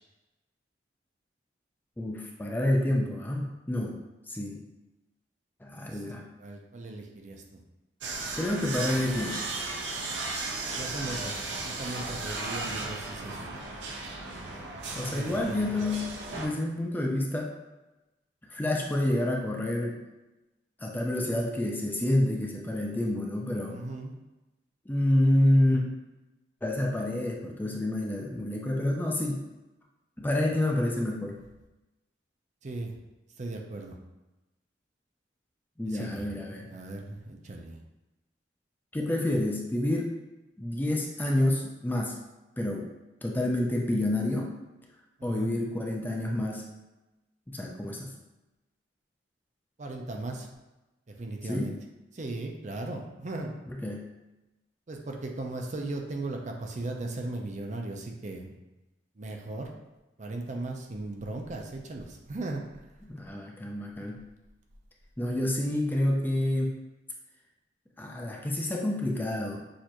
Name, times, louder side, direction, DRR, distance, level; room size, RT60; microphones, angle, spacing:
voice 1, 2.0-4.0 4.3-4.6 5.6-6.3 8.4-9.4 15.0-17.5 18.5-20.0 20.8-23.8 24.9-25.8 26.6-29.4 30.2-31.4 35.8-36.7 38.9-40.1 40.6-42.2 42.6-42.9 43.2-44.5 45.2-46.6 47.5-48.1 51.4-51.7 53.7-54.0 63.0-64.2 65.2-66.8 68.0-69.6, left 1 dB, 10° left, 0 dB, 0.4 m, -28 dB
voice 2, 5.7-7.6 10.7-13.5 15.0-15.8 23.7-24.1 32.6-32.9 33.4-34.0 35.8-36.3 36.6-37.8 45.2-45.5 49.8-50.5 51.1-51.7 52.1-53.5 54.9-58.5 59.2-59.7 60.2-62.6, right 2 dB, 40° right, 2 dB, 0.5 m, -37 dB
sound 1, 8.0-16.5, right 3 dB, 80° right, 0.7 m, -35 dB
6.4 x 2.6 x 2.9 m, 1.0 s
head